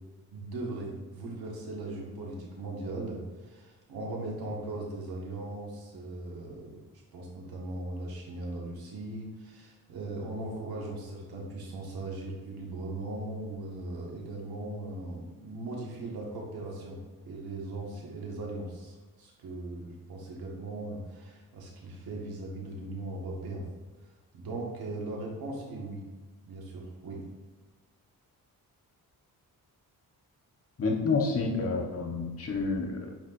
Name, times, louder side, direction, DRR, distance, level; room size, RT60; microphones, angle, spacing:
voice 1, 0.3-6.8 7.1-17.0 17.3-23.7 24.3-26.0 26.4-27.3, right 2 dB, 85° right, -2 dB, 1.7 m, -39 dB
voice 2, 30.8-33.1, left 4 dB, 40° left, 0 dB, 1.2 m, -29 dB
9.0 x 4.5 x 2.6 m, 1.3 s
cardioid pair, 115°, 36 cm